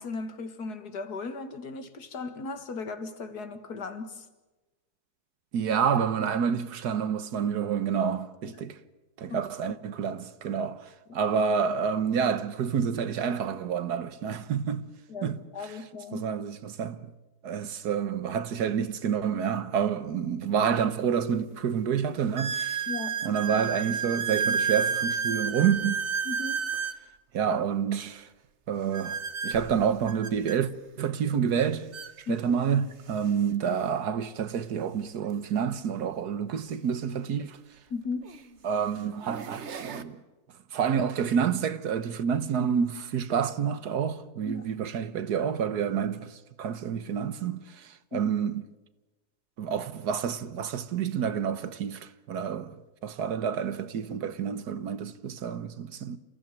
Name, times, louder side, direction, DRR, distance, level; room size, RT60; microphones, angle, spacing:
voice 1, 0.0-4.3 8.5-8.6 9.3-9.4 11.1-11.2 15.1-16.2 22.9-23.2 26.2-26.6 32.3-32.4 37.9-38.2 44.4-44.7 48.1-48.2, left 4 dB, 75° left, 2.3 m, -36 dB
voice 2, 5.5-8.8 9.2-10.8 11.1-14.9 15.2-15.7 16.1-17.1 17.4-22.8 23.2-26.0 27.3-28.3 28.7-29.2 29.4-30.7 31.0-31.9 32.3-37.6 38.6-40.2 40.7-48.6 49.6-52.7 53.0-56.2, right 7 dB, 75° right, 1.6 m, -28 dB
sound 1, 20.6-20.7 21.4-21.5 22.4-27.0 28.9-30.6 31.6-31.7 31.9-32.1 32.9-33.0 35.2-35.3 37.4-37.5 38.2-38.5 39.1-40.0, right 6 dB, 50° right, 1.3 m, -31 dB
29.0 x 15.5 x 9.1 m
omnidirectional pair, 1.7 m